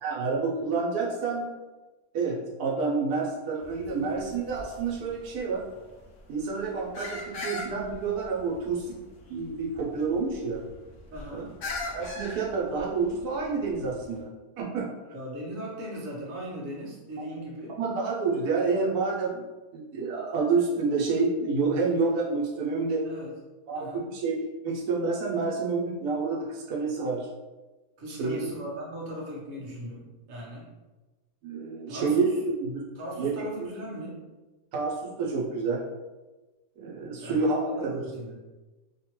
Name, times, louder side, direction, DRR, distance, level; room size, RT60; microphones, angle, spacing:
voice 1, 0.0-1.5 2.1-5.6 6.3-9.0 9.3-10.6 11.3-11.4 11.9-14.3 14.6-14.9 17.8-19.4 19.7-23.0 23.7-27.3 28.1-28.5 31.4-32.9 33.2-33.5 34.7-35.8 36.8-38.0, right 4 dB, 80° right, -4 dB, 1.1 m, -28 dB
sound 1, 3.6-14.2, left 2 dB, 65° left, 0.8 m, -41 dB
voice 2, 11.1-11.5 15.1-17.8 23.0-23.3 23.7-24.1 28.0-30.7 31.9-32.4 32.9-34.2 37.2-37.4 37.8-38.3, equal, 45° right, -5 dB, 0.7 m, -38 dB
2.8 x 2.1 x 2.9 m, 1.2 s
omnidirectional pair, 1.6 m